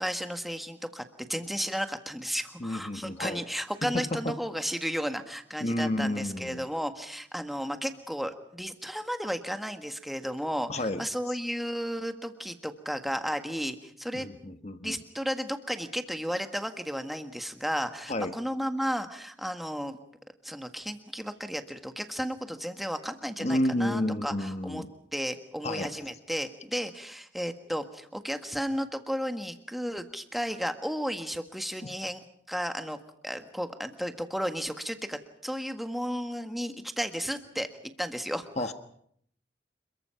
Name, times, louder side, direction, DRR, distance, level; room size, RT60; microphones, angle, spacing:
voice 1, 0.0-14.3 14.8-20.0 20.4-24.8 25.1-37.7 38.0-38.5, equal, ahead, 7 dB, 1.6 m, -33 dB
voice 2, 2.6-3.4 3.8-4.4 5.6-6.7 10.7-11.0 14.1-15.0 18.1-18.4 23.4-24.9 25.6-25.9 31.8-31.9 38.6-38.7, left 1 dB, 40° left, 9 dB, 1.4 m, -31 dB
27.5 x 22.5 x 5.8 m, 0.68 s
head